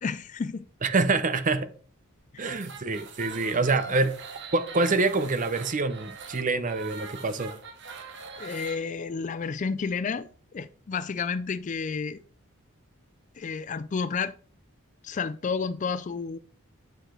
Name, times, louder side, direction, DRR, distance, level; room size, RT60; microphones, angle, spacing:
voice 1, 0.0-0.7 2.3-2.6 3.5-3.7 8.4-10.3 10.5-12.2 13.4-14.3 15.0-16.4, left 5 dB, 35° left, 0.3 m, -31 dB
voice 2, 0.8-1.7 2.4-4.1 4.5-7.5, right 3 dB, 35° right, 0.6 m, -26 dB
sound 1, 2.4-8.8, right 5 dB, 55° right, 1.2 m, -42 dB
9.0 x 4.9 x 3.7 m
head